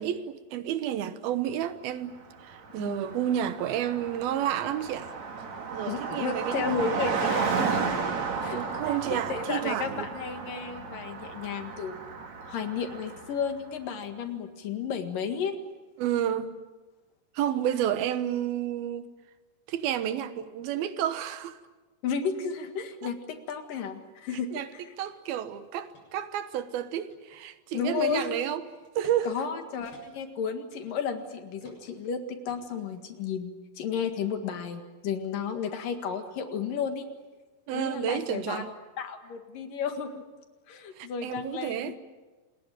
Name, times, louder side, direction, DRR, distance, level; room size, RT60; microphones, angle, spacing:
voice 1, 0.0-5.2 5.7-7.1 8.5-10.1 16.0-16.6 17.3-19.1 19.7-21.6 24.5-24.7 25.0-28.6 29.0-29.3 37.7-38.7 41.0-42.0, right 10 dB, 80° right, 3.0 m, -31 dB
Car passing by, 2.2-2.3 2.5-13.5, right 5 dB, 50° right, 3.6 m, -33 dB
voice 2, 5.9-7.9 8.4-8.6 8.9-12.0 12.5-15.5 22.0-24.8 27.7-28.4 29.3-37.1 37.7-40.2 40.7-41.9, left 6 dB, 65° left, 3.4 m, -33 dB
sound 1, 25.1-25.2 25.6-26.1 26.6-27.5 28.0-28.2 28.8-29.2 29.5-29.6 29.8-30.3 30.7-31.3 31.6-32.0 32.5-33.3, left 1 dB, 40° left, 8.0 m, -56 dB
27.5 x 20.5 x 9.1 m
omnidirectional pair, 4.3 m